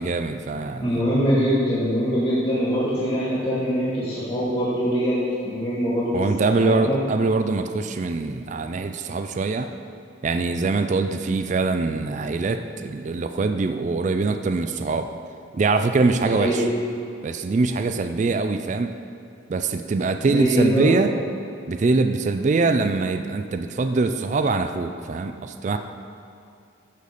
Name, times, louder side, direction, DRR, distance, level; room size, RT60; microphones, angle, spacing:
voice 1, 0.0-1.0 6.1-9.7 10.2-15.1 15.5-16.6 17.2-18.9 19.5-21.1 21.7-25.8, right 3 dB, 35° right, 8 dB, 0.3 m, -23 dB
voice 2, 0.8-5.2 5.4-6.2 6.6-7.0 16.2-16.6 20.3-21.0, equal, 30° left, -9 dB, 1.7 m, -23 dB
10.5 x 4.0 x 6.6 m, 2.5 s
head